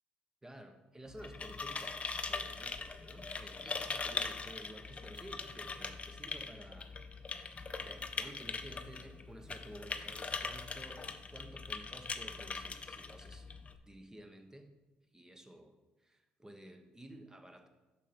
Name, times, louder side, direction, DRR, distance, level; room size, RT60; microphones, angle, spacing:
voice 1, 0.4-7.5 7.8-13.5 13.9-14.7 15.1-17.7, right 1 dB, 15° right, 7 dB, 1.1 m, -53 dB
sound 1, 1.1-13.8, left 4 dB, 30° left, 0.7 m, -41 dB
7.2 x 5.6 x 4.3 m, 1.1 s
hypercardioid pair, 60°, 4 cm